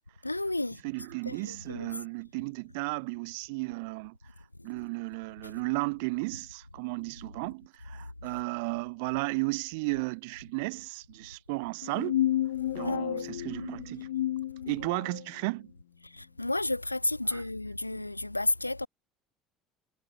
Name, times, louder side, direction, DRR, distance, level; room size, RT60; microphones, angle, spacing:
voice 1, 0.2-0.8 1.3-1.9 4.6-4.7 5.4-5.5 8.0-8.1 12.8-13.3 16.0-18.9, left 2 dB, 90° left, 2.1 m, -32 dB
voice 2, 0.8-4.2 4.6-12.2 12.7-14.1 14.7-15.7 17.3-17.4 17.9-18.0, right 28 dB, 65° right, 6.1 m, -34 dB
sound 1, 11.8-15.2, left 13 dB, 70° left, 0.8 m, -31 dB
figure-of-eight pair, 60°, 0 cm